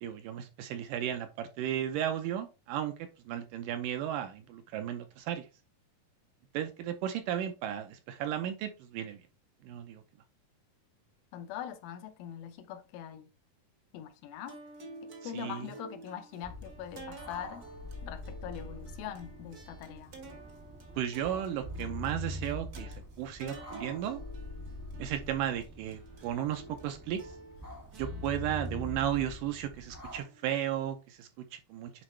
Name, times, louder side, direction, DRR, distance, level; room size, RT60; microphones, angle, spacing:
voice 1, 0.0-2.9 3.3-5.5 6.5-9.2 9.6-10.0 15.2-15.7 21.0-24.2 25.0-27.2 28.0-31.9, right 10 dB, 75° right, 2.1 m, -34 dB
voice 2, 11.3-13.3 13.9-14.6 15.0-17.7 18.0-20.2, left 10 dB, 80° left, 2.5 m, -42 dB
sound 1, 14.5-30.9, right 2 dB, 55° right, 1.0 m, -51 dB
sound 2, 16.4-30.2, equal, 25° right, 0.4 m, -44 dB
9.8 x 4.0 x 3.2 m
omnidirectional pair, 4.3 m